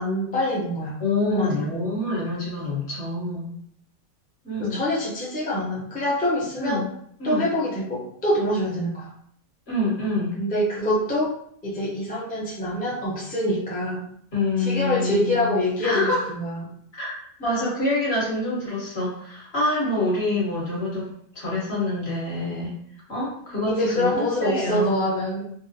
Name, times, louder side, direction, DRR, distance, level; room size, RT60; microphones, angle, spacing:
voice 1, 0.0-1.0 1.3-1.6 4.6-6.8 7.2-9.1 10.4-11.3 11.6-14.1 14.6-16.6 23.7-25.5, left 1 dB, 10° left, -7 dB, 0.4 m, -25 dB
voice 2, 1.0-3.5 4.4-4.8 6.6-6.9 7.2-7.5 9.7-10.3 14.3-16.2 17.0-17.1 17.4-21.1 21.3-22.7 23.1-24.9, left 2 dB, 45° left, -6 dB, 1.5 m, -26 dB
3.7 x 2.0 x 2.7 m, 0.65 s
omnidirectional pair, 1.5 m